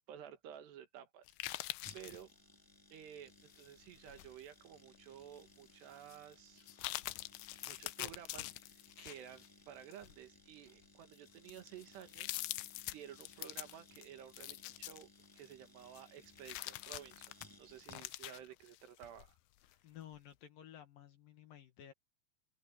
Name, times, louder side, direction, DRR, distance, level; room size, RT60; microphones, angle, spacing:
voice 1, 0.1-1.6 1.9-2.3 2.9-6.7 7.7-8.5 9.0-15.1 15.3-17.3 17.6-19.4, right 9 dB, 70° right, 3.7 m, -53 dB
sound 1, 1.3-2.2 3.5-4.5 5.0-5.1 6.0-6.2 6.6-9.5 9.9-10.2 10.8-10.9 11.3-15.5 16.0-19.3 19.6-19.7, left 19 dB, 85° left, 2.8 m, -45 dB
sound 2, 1.8-18.3 18.6-18.7, left 1 dB, 5° left, 1.8 m, -63 dB
voice 2, 19.8-21.9, left 10 dB, 65° left, 2.7 m, -54 dB
omnidirectional pair, 5.1 m